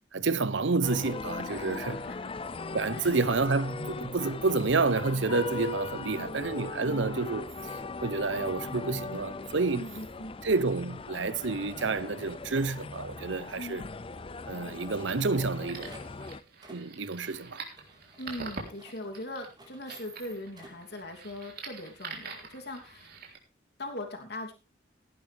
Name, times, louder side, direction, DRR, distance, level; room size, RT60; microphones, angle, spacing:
voice 1, 0.1-2.0 2.7-7.5 8.0-9.8 10.4-13.8 14.5-15.9 16.7-17.6, right 3 dB, 80° right, 0.9 m, -29 dB
sound 1, 0.8-16.4, left 3 dB, 30° left, 0.6 m, -39 dB
voice 2, 1.5-2.3 2.9-3.1 6.1-6.5 6.8-7.1 9.7-10.3 13.6-13.8 18.2-23.1 23.8-24.5, left 1 dB, 60° left, 3.1 m, -41 dB
sound 2, 13.2-14.1 14.4-14.5 14.7-14.8 15.3-21.0, right 2 dB, 25° right, 4.0 m, -54 dB
sound 3, 14.9-23.4, right 4 dB, 55° right, 3.7 m, -45 dB
17.0 x 11.0 x 3.5 m
head